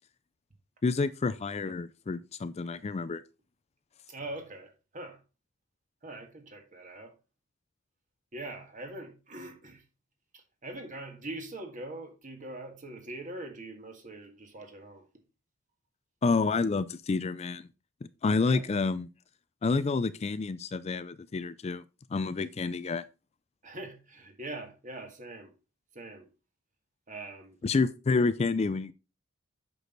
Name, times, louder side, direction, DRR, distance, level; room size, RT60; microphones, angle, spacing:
voice 1, 0.8-3.2 16.2-17.7 18.2-19.1 19.6-21.8 22.1-23.0 27.6-28.9, left 4 dB, 35° left, 0.4 m, -29 dB
voice 2, 4.1-5.2 6.0-7.1 8.3-9.8 10.3-15.1 18.4-18.6 23.6-25.5 25.9-26.3 27.1-27.6, right 2 dB, 40° right, 1.9 m, -42 dB
8.1 x 6.2 x 3.9 m
head